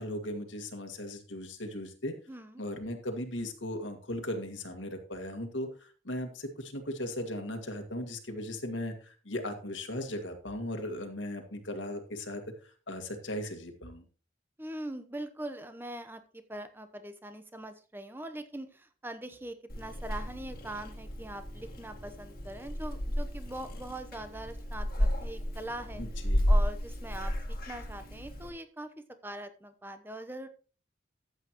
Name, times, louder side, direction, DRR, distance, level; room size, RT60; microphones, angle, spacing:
voice 1, 0.0-2.1 2.6-12.4 12.9-14.0 26.0-26.5, left 1 dB, 85° left, 5 dB, 1.9 m, -37 dB
voice 2, 2.3-2.6 14.6-26.0 26.5-28.9 29.2-30.5, right 1 dB, 10° right, 9 dB, 0.9 m, -42 dB
Purr / Meow, 19.7-28.5, equal, 50° left, 1.7 m, -32 dB
13.0 x 8.2 x 3.0 m, 0.37 s
head